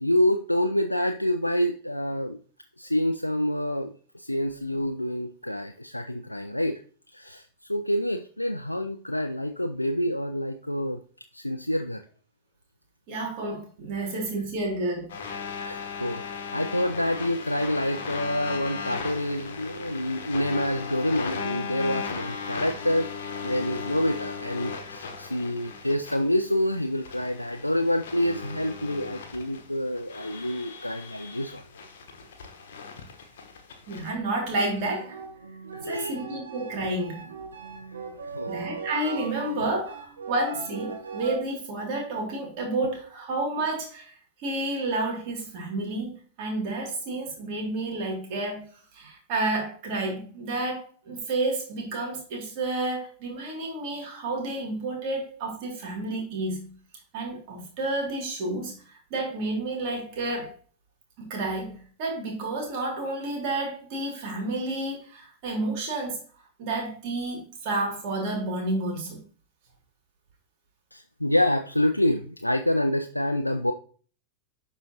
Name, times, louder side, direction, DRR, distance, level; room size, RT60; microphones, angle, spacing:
voice 1, 0.0-2.4 2.8-6.8 7.1-11.0 11.3-12.0 15.6-23.1 23.4-31.6 35.7-36.2 38.3-38.5 70.9-73.7, left 1 dB, 85° left, 6 dB, 0.4 m, -27 dB
voice 2, 13.1-15.1 33.9-35.2 35.8-37.3 38.5-44.1 44.4-56.7 57.1-60.5 61.2-66.2 66.6-69.2, right 2 dB, 45° right, 1 dB, 2.5 m, -30 dB
sound 1, 15.1-34.1, left 5 dB, 60° left, 1.1 m, -37 dB
sound 2, 34.4-41.4, right 4 dB, 70° right, 1.0 m, -39 dB
11.0 x 3.7 x 2.8 m, 0.42 s
figure-of-eight pair, 90°, 0 cm